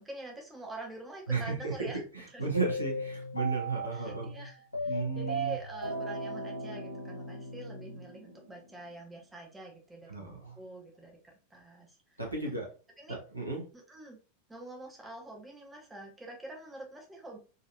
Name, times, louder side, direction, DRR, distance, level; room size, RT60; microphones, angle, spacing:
voice 1, 0.0-2.0 2.3-2.4 3.9-4.6 4.8-11.2 11.5-12.0 13.0-13.2 13.7-14.2 14.5-17.4, right 1 dB, 10° right, 1 dB, 0.8 m, -46 dB
voice 2, 1.3-4.3 4.8-5.6 10.1-10.6 12.2-12.7 13.1-13.6, right 4 dB, 90° right, -1 dB, 1.1 m, -34 dB
sound 1, 2.5-8.7, right 1 dB, 85° left, 0.9 m, -37 dB
4.0 x 2.6 x 2.6 m, 0.35 s
figure-of-eight pair, 90°, 0 cm